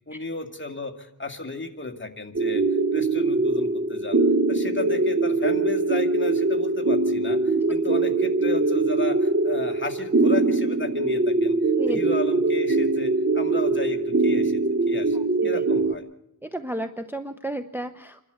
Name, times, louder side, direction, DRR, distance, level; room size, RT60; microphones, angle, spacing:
voice 1, 0.1-2.6 2.9-4.2 4.5-11.6 11.9-14.6 14.9-15.2 15.4-16.1, left 3 dB, 30° left, 2 dB, 2.1 m, -33 dB
sound 1, 2.3-15.9, right 3 dB, 35° right, 0.9 m, -22 dB
voice 2, 15.1-15.5 16.4-18.2, right 1 dB, 5° right, 8 dB, 0.8 m, -32 dB
27.5 x 12.0 x 8.0 m, 0.80 s
wide cardioid pair, 60°, 39 cm